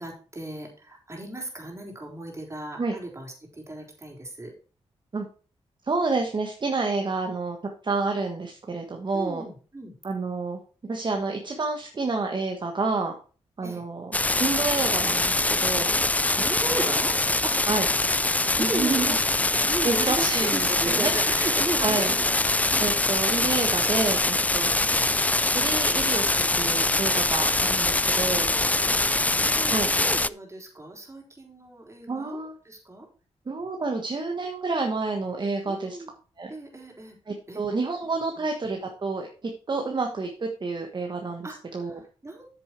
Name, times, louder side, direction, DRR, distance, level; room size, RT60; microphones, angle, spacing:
voice 1, 0.0-4.5 9.1-9.9 13.6-13.8 16.4-17.1 17.4-17.6 18.6-19.3 19.5-22.9 24.7-24.9 28.8-29.7 30.0-33.1 35.7-36.1 36.5-37.2 37.5-37.6 38.3-38.5 41.4-42.5, right 2 dB, 25° right, 1 dB, 3.8 m, -36 dB
voice 2, 5.8-7.6 7.8-9.5 10.0-13.1 13.6-15.9 16.3-16.9 17.7-17.9 18.6-19.1 19.8-21.1 21.8-22.1 22.8-24.7 25.5-28.5 29.7-29.9 32.1-32.5 33.5-36.0 36.4-36.5 37.3-42.0, right 3 dB, 40° right, 3 dB, 1.4 m, -29 dB
sound 1, 14.1-30.3, left 2 dB, 15° left, 0.4 m, -23 dB
8.4 x 6.8 x 4.5 m, 0.38 s
cardioid pair, 60°, 11 cm